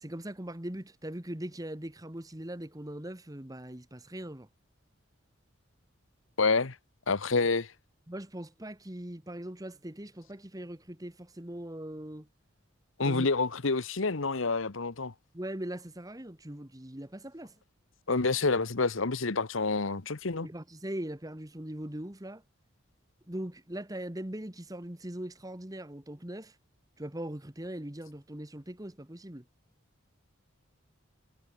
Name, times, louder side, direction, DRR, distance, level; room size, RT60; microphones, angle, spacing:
voice 1, 0.0-4.5 8.1-12.3 13.0-13.3 15.3-17.5 20.4-22.4 23.3-26.5 27.0-29.4, right 1 dB, 15° right, 1.4 m, -40 dB
voice 2, 6.4-6.7 7.1-7.7 13.0-15.1 18.1-20.5, left 3 dB, 75° left, 1.2 m, -28 dB
head